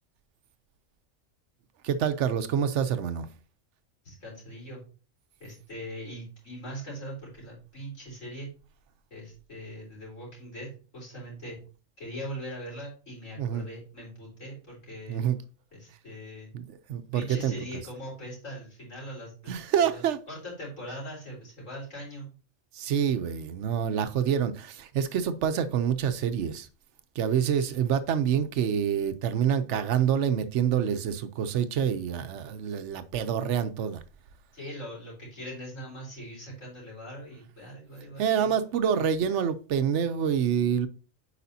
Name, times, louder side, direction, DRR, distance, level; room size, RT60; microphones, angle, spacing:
voice 1, 1.8-3.3 13.4-13.7 15.1-15.4 16.5-17.5 19.5-20.2 22.7-26.7 27.2-34.0 38.2-40.9, right 8 dB, 70° right, 0.9 m, -27 dB
voice 2, 4.0-4.8 5.4-8.5 9.1-10.7 10.9-11.6 12.0-15.2 15.7-16.5 17.1-22.3 27.5-27.8 34.5-38.5, equal, 75° left, 4.3 m, -41 dB
8.3 x 5.0 x 2.7 m
omnidirectional pair, 1.3 m